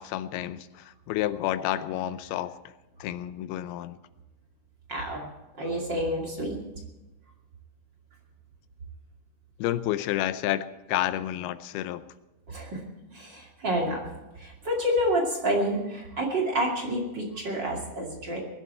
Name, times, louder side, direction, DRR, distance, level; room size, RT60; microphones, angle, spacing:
voice 1, 0.0-2.6 3.0-4.0 9.6-12.0, left 13 dB, 85° left, 12 dB, 2.6 m, -30 dB
voice 2, 4.9-5.3 5.6-6.6 12.5-12.8 13.1-14.1 14.4-18.4, equal, 30° right, -1 dB, 2.7 m, -28 dB
21.0 x 12.0 x 4.4 m, 1.1 s
omnidirectional pair, 4.5 m